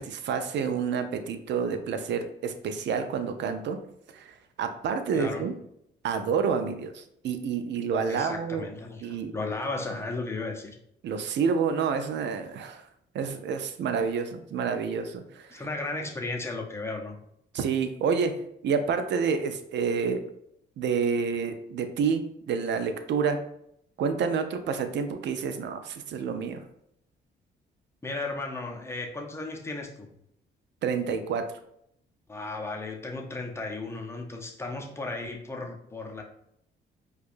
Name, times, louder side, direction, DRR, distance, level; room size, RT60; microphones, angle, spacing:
voice 1, 0.0-3.8 4.1-4.3 4.6-5.5 6.0-8.7 9.0-9.3 11.0-12.8 13.1-15.6 17.5-18.3 18.6-20.2 20.8-23.4 24.0-26.6 30.8-31.4, right 6 dB, 65° right, 8 dB, 0.5 m, -28 dB
voice 2, 5.1-5.5 8.1-10.7 15.5-17.2 28.0-30.1 32.3-36.2, left 3 dB, 15° left, 1 dB, 0.6 m, -35 dB
4.6 x 2.3 x 2.5 m, 0.74 s
cardioid pair, 90°, 20 cm